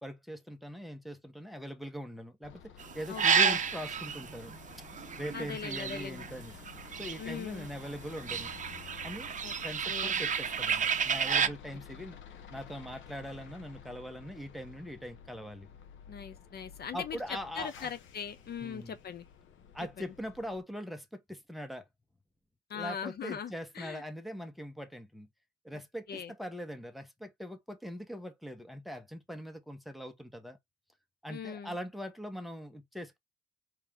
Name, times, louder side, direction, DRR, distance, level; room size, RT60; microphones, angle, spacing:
voice 1, 0.0-4.5 5.1-6.6 6.9-8.5 9.0-9.3 9.6-12.2 12.5-15.7 16.9-17.9 18.6-18.9 19.7-21.9 22.7-25.3 25.6-30.6 31.2-33.2, equal, ahead, 1.1 m, -42 dB
sound 1, 2.4-20.6, left 7 dB, 75° left, 1.1 m, -52 dB
sound 2, 2.8-7.6 7.8-11.5, right 7 dB, 40° right, 0.8 m, -31 dB
voice 2, 3.1-3.6 5.3-6.3 7.2-7.7 9.4-9.5 9.9-10.2 11.4-11.5 16.1-17.2 17.5-19.3 20.0-20.1 22.7-24.0 25.7-25.8 26.1-26.3 31.3-31.8, left 7 dB, 55° left, 0.8 m, -40 dB
4.4 x 3.2 x 3.6 m
cardioid pair, 90°, 20 cm